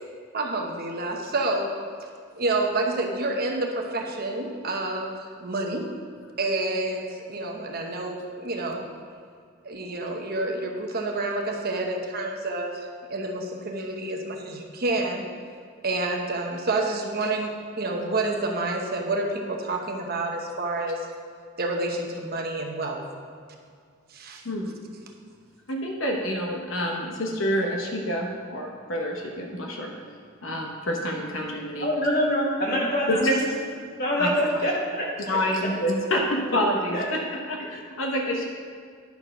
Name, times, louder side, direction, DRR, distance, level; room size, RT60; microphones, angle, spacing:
voice 1, 0.3-1.7 2.4-5.9 6.4-8.8 9.6-12.8 13.1-15.2 15.8-21.0 21.6-23.0 24.1-24.4, right 2 dB, 50° right, 2 dB, 0.9 m, -28 dB
voice 2, 24.4-24.7 25.7-29.9 30.4-31.9 33.1-33.4 34.2-34.3 35.3-38.5, equal, 70° left, 1 dB, 1.0 m, -27 dB
voice 3, 31.8-33.3 34.0-35.7 36.9-37.0 37.6-37.7, equal, 50° left, -5 dB, 2.4 m, -25 dB
10.5 x 4.4 x 5.5 m, 2.1 s
head